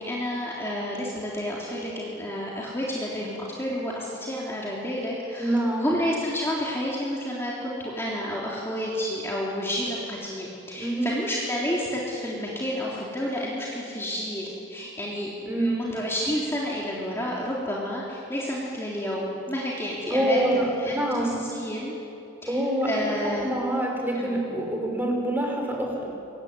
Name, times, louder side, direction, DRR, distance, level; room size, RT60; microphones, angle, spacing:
voice 1, 0.0-20.4 20.8-21.9 22.4-23.6 24.1-24.4, equal, 10° left, -5 dB, 3.4 m, -30 dB
voice 2, 5.4-5.9 10.8-11.1 15.5-15.7 20.1-21.4 22.5-22.9 23.4-26.1, right 1 dB, 10° right, 0 dB, 5.5 m, -26 dB
26.0 x 22.0 x 9.7 m, 2.9 s
head